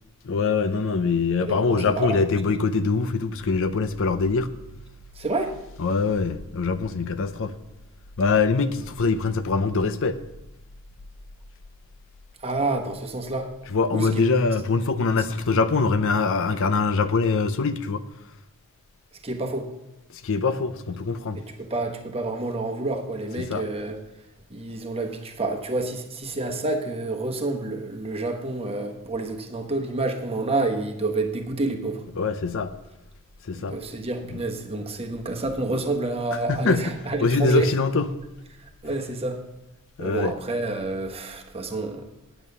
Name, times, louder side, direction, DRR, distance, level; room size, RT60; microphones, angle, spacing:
voice 1, 0.3-4.5 5.8-7.5 8.2-10.2 13.7-18.0 20.2-21.4 23.5-23.6 32.2-32.7 33.5-33.7 36.5-36.8 37.2-38.0 40.0-40.3, left 4 dB, 60° left, 12 dB, 0.6 m, -23 dB
voice 2, 1.4-2.2 5.1-5.5 12.4-13.5 13.9-14.2 19.2-19.7 21.3-24.0 24.5-32.0 33.5-37.7 38.6-39.4 40.0-42.1, right 2 dB, 25° right, 3 dB, 1.1 m, -29 dB
9.1 x 8.7 x 5.5 m, 0.94 s
head